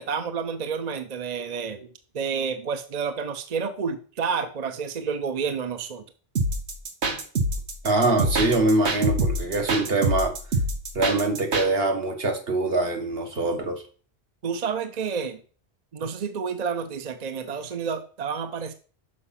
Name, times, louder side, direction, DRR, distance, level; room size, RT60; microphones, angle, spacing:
voice 1, 0.0-6.0 14.4-15.4 15.9-18.7, right 6 dB, 45° right, 10 dB, 0.7 m, -30 dB
sound 1, 6.4-11.7, right 2 dB, 80° right, 1.5 m, -25 dB
voice 2, 7.8-10.3 10.9-13.8, right 2 dB, 65° right, 4 dB, 1.7 m, -23 dB
6.4 x 5.4 x 5.8 m, 0.41 s
omnidirectional pair, 1.1 m